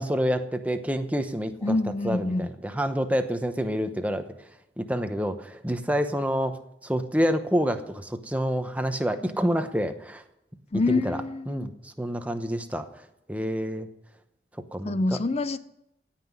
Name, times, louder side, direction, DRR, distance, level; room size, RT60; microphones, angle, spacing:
voice 1, 0.0-1.8 2.0-4.2 4.8-10.2 10.9-11.2 11.5-12.9 13.3-13.9 14.7-15.2, equal, 10° right, 0.9 m, -28 dB
voice 2, 1.6-2.5 10.7-11.7 14.8-15.6, left 2 dB, 35° left, 0.5 m, -26 dB
17.0 x 5.9 x 9.5 m
head